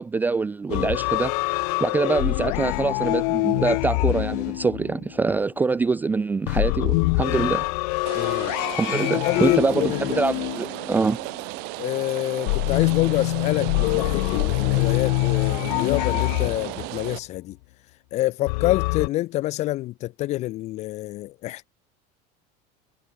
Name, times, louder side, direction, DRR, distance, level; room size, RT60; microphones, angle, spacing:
voice 1, 0.0-1.3 1.8-7.7 8.8-11.2, right 4 dB, 10° right, 0.4 m, -24 dB
sound 1, 0.7-5.3 6.5-11.2 12.5-17.1 18.5-19.1, left 30 dB, 70° left, 1.1 m, -25 dB
Rain, 8.1-17.2, right 31 dB, 50° right, 1.2 m, -35 dB
voice 2, 8.2-8.6 9.3-10.2 11.8-17.6 18.1-21.7, left 16 dB, 35° left, 0.6 m, -27 dB
cardioid pair, 180°, 21 cm